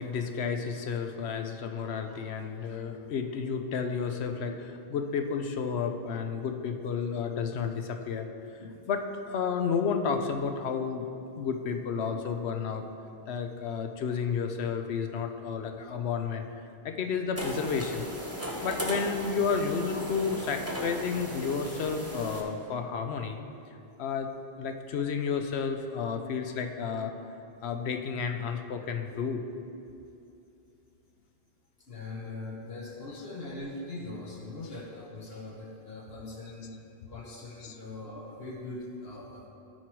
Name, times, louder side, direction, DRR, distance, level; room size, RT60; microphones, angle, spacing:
voice 1, 0.0-8.3 8.9-11.1 11.4-12.8 13.3-16.5 16.8-18.1 18.6-23.4 24.0-24.3 24.6-27.1 27.6-29.5 33.1-33.2 37.6-37.8, left 6 dB, 90° left, 6 dB, 1.0 m, -31 dB
sound 1, 17.4-22.4, equal, 15° right, 0.9 m, -37 dB
voice 2, 31.9-36.7 37.1-39.5, left 2 dB, 70° left, -2 dB, 1.2 m, -41 dB
13.0 x 4.6 x 4.6 m, 2.6 s
omnidirectional pair, 1.1 m